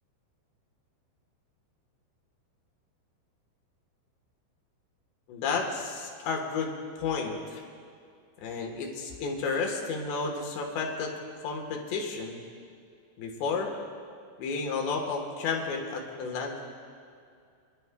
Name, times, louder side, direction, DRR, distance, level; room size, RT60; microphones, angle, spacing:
voice 1, 5.3-7.6 8.4-11.1 11.4-12.4 13.2-13.7 14.4-16.6, left 4 dB, 70° left, 0 dB, 3.2 m, -32 dB
27.0 x 11.0 x 2.2 m, 2.4 s
omnidirectional pair, 5.6 m